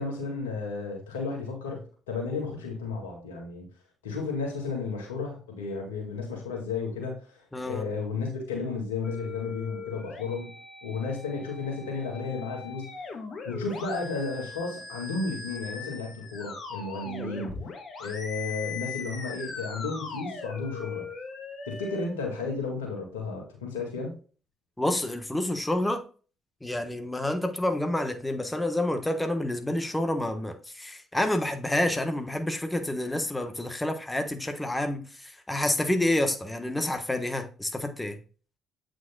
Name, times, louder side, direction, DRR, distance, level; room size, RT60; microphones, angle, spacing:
voice 1, 0.0-3.7 4.0-10.5 10.8-12.9 13.4-17.5 18.0-21.1 21.7-24.2, left 4 dB, 85° left, 1.9 m, -33 dB
voice 2, 7.5-7.9 17.1-17.5 24.8-26.0 26.6-38.2, left 1 dB, 15° left, 1.3 m, -29 dB
sound 1, 9.0-22.1, left 5 dB, 50° left, 1.8 m, -40 dB
8.3 x 5.0 x 2.3 m
hypercardioid pair, 50°, 0 cm